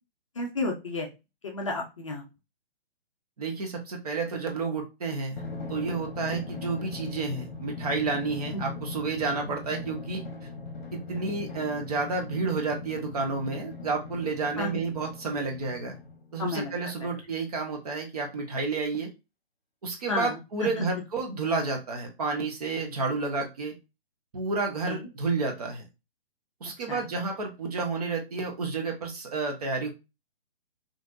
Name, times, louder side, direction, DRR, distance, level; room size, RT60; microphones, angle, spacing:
voice 1, 0.4-1.1 1.4-2.2 6.3-6.4 8.5-8.6 14.6-14.8 16.4-16.7 17.0-17.1 20.1-21.0 24.9-25.1 26.9-27.0, left 2 dB, 30° left, 1 dB, 0.5 m, -32 dB
voice 2, 3.4-5.4 5.7-10.2 10.9-15.9 16.3-19.1 19.8-23.7 24.3-25.8 26.6-29.9, right 4 dB, 40° right, 1 dB, 0.8 m, -30 dB
Drum, 5.4-16.4, left 3 dB, 45° left, 0.8 m, -40 dB
3.1 x 2.5 x 2.5 m, 0.26 s
figure-of-eight pair, 135°, 31 cm